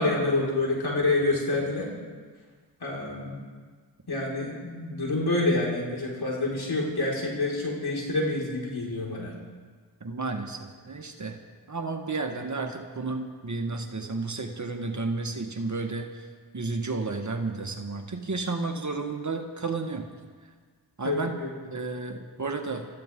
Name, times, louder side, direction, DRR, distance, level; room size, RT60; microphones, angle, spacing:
voice 1, 0.0-1.9 2.8-3.4 4.1-9.3 21.0-21.5, left 2 dB, 55° left, -3 dB, 5.3 m, -27 dB
voice 2, 10.0-11.4 11.7-16.1 16.5-20.1 21.0-21.4 21.7-22.9, right 3 dB, 40° right, 4 dB, 1.7 m, -32 dB
25.0 x 14.0 x 3.8 m, 1.5 s
cardioid pair, 45°, 46 cm